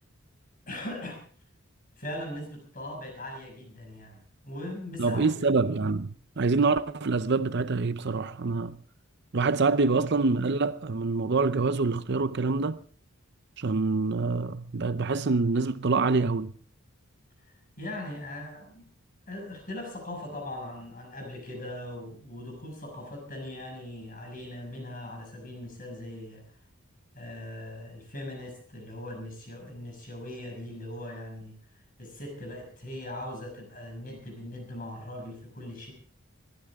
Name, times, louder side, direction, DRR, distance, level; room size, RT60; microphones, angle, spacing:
voice 1, 0.7-1.2 2.0-5.3 9.6-9.7 17.4-18.9 19.3-26.5 27.1-31.6 32.0-35.9, left 1 dB, 40° left, 6.3 m, -40 dB
voice 2, 5.0-8.8 9.3-12.8 13.6-16.5, right 3 dB, 55° right, 0.7 m, -26 dB
21.5 x 14.5 x 3.6 m
head